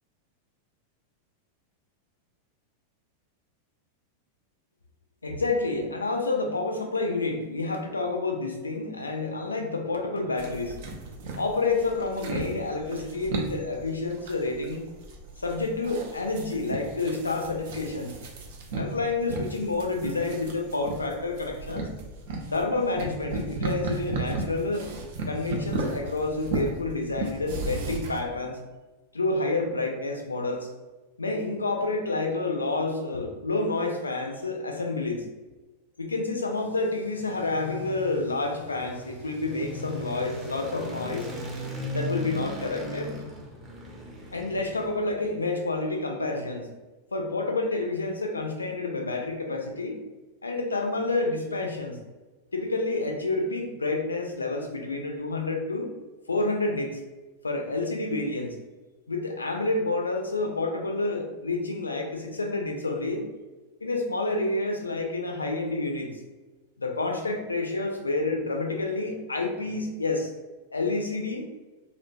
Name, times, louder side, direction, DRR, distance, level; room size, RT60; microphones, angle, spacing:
voice 1, 5.2-10.8 11.3-14.8 15.4-18.1 18.7-21.9 22.5-24.9 25.3-28.6 29.1-30.7 31.2-35.3 36.0-41.3 41.9-43.1 44.3-46.7 47.1-50.0 50.4-52.0 52.5-55.9 56.3-57.0 57.4-58.6 59.1-63.3 63.8-66.1 66.8-70.3 70.7-71.5, left 3 dB, 80° left, 3 dB, 0.3 m, -29 dB
sound 1, 10.4-28.2, right 3 dB, 55° right, 0.4 m, -35 dB
sound 2, 37.0-45.3, left 1 dB, 20° right, 0.6 m, -37 dB
2.6 x 2.1 x 2.5 m, 1.2 s
figure-of-eight pair, 90°, 0 cm